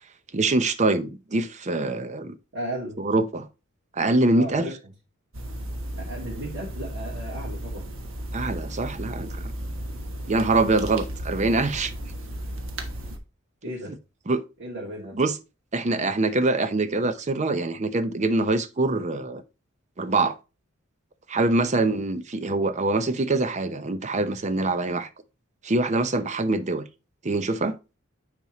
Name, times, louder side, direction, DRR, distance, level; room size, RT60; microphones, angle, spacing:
voice 1, 0.3-2.4 3.0-3.5 3.9-4.7 8.3-9.4 10.3-11.9 14.3-14.4 15.1-15.4 15.7-19.4 20.0-20.3 21.3-25.1 25.6-26.8 27.2-27.8, right 2 dB, 35° right, 0.6 m, -24 dB
voice 2, 2.5-3.0 4.3-4.7 6.0-7.8 13.6-13.9 14.6-15.2 21.7-22.0, right 1 dB, 70° right, 2.9 m, -35 dB
sound 1, 5.3-13.2, right 1 dB, 90° right, 1.3 m, -34 dB
9.5 x 4.5 x 3.0 m
head